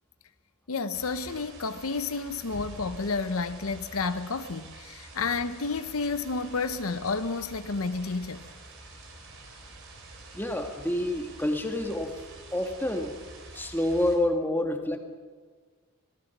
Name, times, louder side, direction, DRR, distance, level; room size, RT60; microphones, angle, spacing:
voice 1, 0.7-8.4, left 4 dB, 75° left, 0.8 m, -31 dB
sound 1, 0.9-14.2, right 2 dB, 60° right, 4.3 m, -47 dB
voice 2, 10.3-12.2 12.5-13.2 13.5-15.0, left 1 dB, 10° left, 1.9 m, -28 dB
25.5 x 18.5 x 6.0 m
head